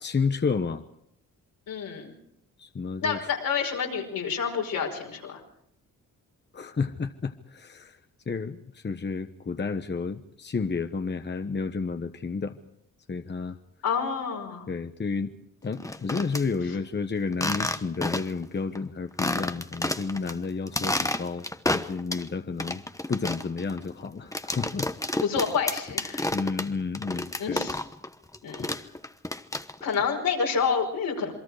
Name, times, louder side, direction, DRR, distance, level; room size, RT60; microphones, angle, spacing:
voice 1, 0.0-0.8 2.6-3.2 6.5-8.0 8.3-12.6 13.1-13.6 14.7-15.3 15.6-21.5 21.7-22.8 23.1-25.2 26.3-27.7 28.6-28.7, left 4 dB, 30° left, 8 dB, 1.2 m, -31 dB
voice 2, 1.7-2.1 3.0-5.4 13.8-14.7 25.2-26.3 27.4-27.8 28.4-28.8 29.8-31.3, left 6 dB, 80° left, 1 dB, 5.4 m, -28 dB
sound 1, 15.7-16.4 17.3-18.4 18.7-18.8 19.2-20.3 20.7-22.3 22.6-28.1 28.3-29.9, left 1 dB, 10° left, 1.1 m, -30 dB
28.0 x 22.0 x 4.9 m, 0.71 s
cardioid pair, 70°, 34 cm